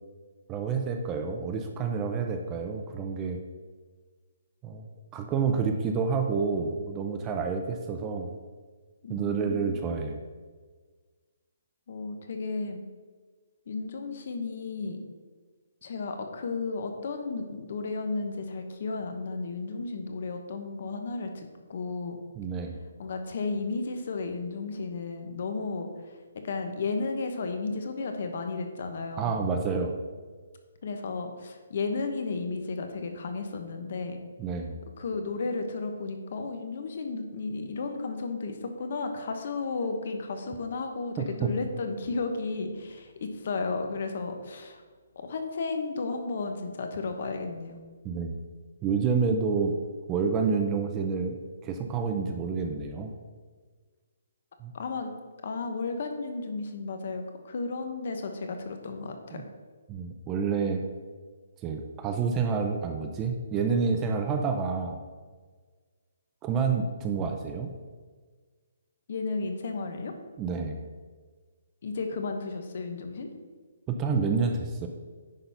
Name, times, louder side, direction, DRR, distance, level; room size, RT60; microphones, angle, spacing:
voice 1, 0.5-3.4 4.6-4.9 5.1-8.3 9.1-10.2 22.4-22.8 29.2-29.9 34.4-34.8 41.4-41.5 48.0-48.4 48.8-49.8 50.1-51.4 51.6-53.1 54.6-54.7 59.3-59.4 59.9-60.9 61.6-65.0 66.4-67.7 70.4-70.8 73.9-74.9, right 5 dB, 15° right, 5 dB, 0.5 m, -28 dB
voice 2, 9.0-9.8 11.9-12.8 13.7-15.1 15.8-22.2 23.0-29.4 30.8-34.2 35.0-44.8 45.1-47.8 54.7-55.1 55.4-59.4 69.1-70.1 71.8-73.3, left 3 dB, 45° left, 6 dB, 1.1 m, -33 dB
10.0 x 4.0 x 5.6 m, 1.5 s
hypercardioid pair, 170°, 0 cm